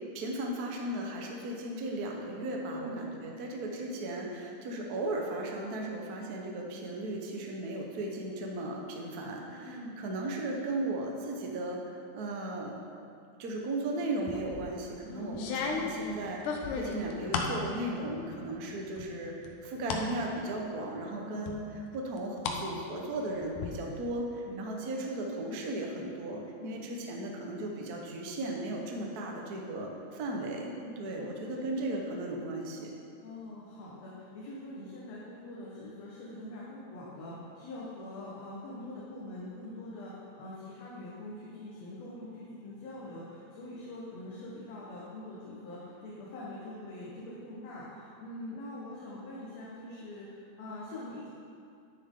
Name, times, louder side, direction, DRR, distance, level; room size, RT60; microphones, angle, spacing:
voice 1, 0.1-12.7 13.4-21.6 21.9-32.9, right 1 dB, 70° right, 0 dB, 0.9 m, -36 dB
voice 2, 2.7-3.1 9.6-10.0 15.1-15.4 21.2-21.7 24.4-24.9 26.6-26.9 30.7-31.7 33.2-51.3, left 1 dB, 65° left, -6 dB, 2.3 m, -44 dB
sound 1, 14.3-14.7 15.3-17.6 18.0-18.6 19.0-20.1 20.5-20.6 21.5-22.6 22.9-23.7, left 5 dB, 85° left, 2.4 m, -35 dB
10.5 x 9.8 x 3.8 m, 2.4 s
omnidirectional pair, 3.5 m